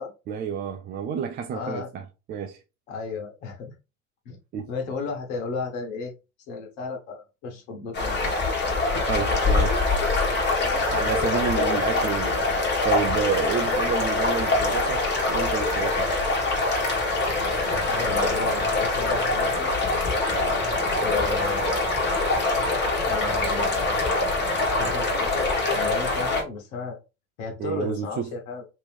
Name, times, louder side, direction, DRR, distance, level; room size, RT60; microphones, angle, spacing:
voice 1, 0.3-2.6 4.5-4.7 9.1-9.8 10.6-12.5 12.8-16.1 20.3-20.6 27.6-28.4, right 7 dB, 25° right, 0.4 m, -30 dB
voice 2, 1.5-1.9 2.9-3.7 4.2-4.4 4.7-6.1 6.5-8.2 17.7-19.7 21.0-21.8 23.1-27.0 27.4-28.6, left 4 dB, 60° left, 1.5 m, -34 dB
sound 1, 7.9-26.4, left 2 dB, 25° left, 1.5 m, -24 dB
3.2 x 3.0 x 3.4 m
hypercardioid pair, 85°, 43 cm